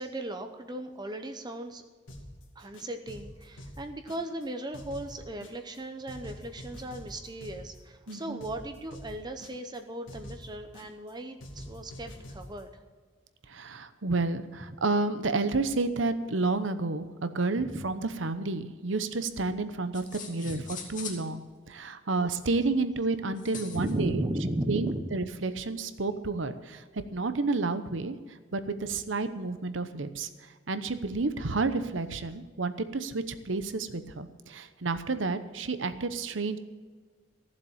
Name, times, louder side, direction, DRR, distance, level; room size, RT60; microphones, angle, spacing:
voice 1, 0.0-1.8 2.5-12.8 17.6-17.9 20.4-20.7 23.7-25.2, right 1 dB, 20° right, 6 dB, 0.8 m, -36 dB
sound 1, 2.1-2.4 2.7-4.4 4.7-5.8 6.1-7.8 8.1-9.8 10.1-11.1 11.4-12.6, equal, 80° left, 2.5 m, -46 dB
voice 2, 8.1-8.4 13.5-20.6 20.9-24.2 24.7-26.8 27.1-30.3 30.7-36.6, right 3 dB, 75° right, 11 dB, 0.9 m, -30 dB
sound 2, 19.9-21.3 23.4-24.0, left 6 dB, 40° left, 2.5 m, -42 dB
15.0 x 7.5 x 7.3 m, 1.5 s
head